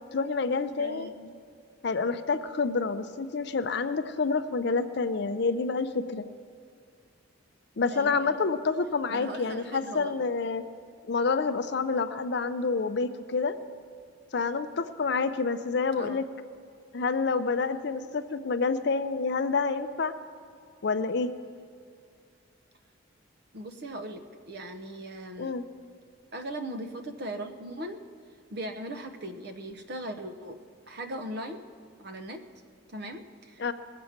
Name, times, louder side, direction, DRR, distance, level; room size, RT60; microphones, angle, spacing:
voice 1, 0.1-1.1 1.8-6.2 7.8-10.6 11.1-13.5 14.3-16.2 16.9-20.1 20.8-21.3 25.4-25.6 33.6-33.7, left 4 dB, 50° left, 11 dB, 0.5 m, -28 dB
voice 2, 0.8-1.3 7.9-8.4 9.1-10.2 16.0-16.2 23.5-25.5 26.3-28.0 28.5-30.6 30.9-31.6 32.0-32.4 32.9-33.7, right 1 dB, 50° right, 7 dB, 0.8 m, -39 dB
19.5 x 7.6 x 5.8 m, 2.4 s
head